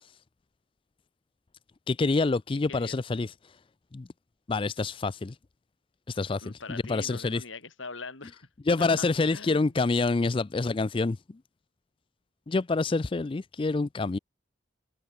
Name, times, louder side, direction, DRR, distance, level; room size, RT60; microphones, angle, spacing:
voice 1, 1.9-3.3 3.9-4.1 4.5-5.4 6.1-7.4 8.7-11.2 12.5-14.2, left 3 dB, 25° left, 0.4 m, -27 dB
voice 2, 6.4-8.5 8.8-9.7, left 4 dB, 85° left, 3.2 m, -42 dB
head